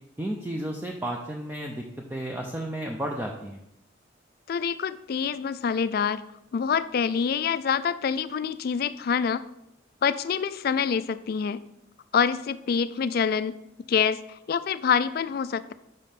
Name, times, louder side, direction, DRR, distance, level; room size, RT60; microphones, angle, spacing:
voice 1, 0.2-1.8 2.1-3.6, right 1 dB, 10° right, 0 dB, 0.5 m, -32 dB
voice 2, 4.5-6.2 6.5-9.4 10.0-11.6 12.1-13.6 13.9-14.2 14.5-15.7, left 6 dB, 55° left, 15 dB, 0.3 m, -26 dB
5.3 x 5.3 x 5.8 m, 0.84 s
head